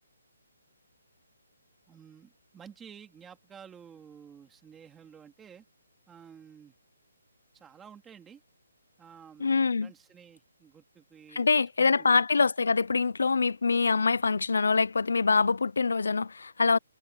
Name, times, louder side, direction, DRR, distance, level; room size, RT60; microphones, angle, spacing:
voice 1, 1.9-5.6 6.1-6.7 7.5-8.4 9.0-12.1, right 7 dB, 5° right, 2.6 m, -52 dB
voice 2, 9.4-9.9 11.3-16.8, left 4 dB, 80° left, 0.6 m, -24 dB
hypercardioid pair, 175°, 0 cm